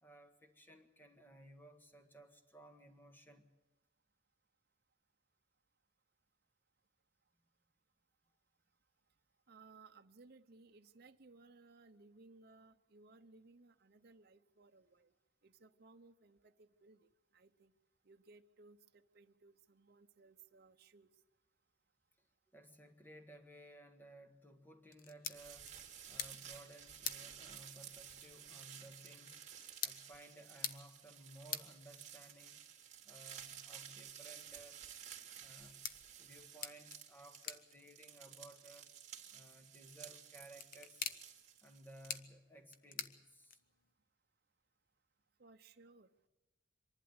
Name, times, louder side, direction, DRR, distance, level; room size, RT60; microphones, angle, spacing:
voice 1, 0.0-3.5 22.5-25.7 26.1-29.4 29.8-32.6 33.0-34.8 35.4-35.8 36.2-38.9 39.3-41.0 41.6-43.6, right 1 dB, 10° left, 5 dB, 1.7 m, -58 dB
voice 2, 9.5-15.1 15.4-17.7 18.0-21.1 45.4-46.1, right 3 dB, 55° right, 6 dB, 0.8 m, -62 dB
sound 1, 24.9-43.9, left 7 dB, 50° left, 1.0 m, -50 dB
sound 2, 25.3-42.2, right 9 dB, 40° right, 2.5 m, -54 dB
25.0 x 11.5 x 9.7 m, 1.1 s
head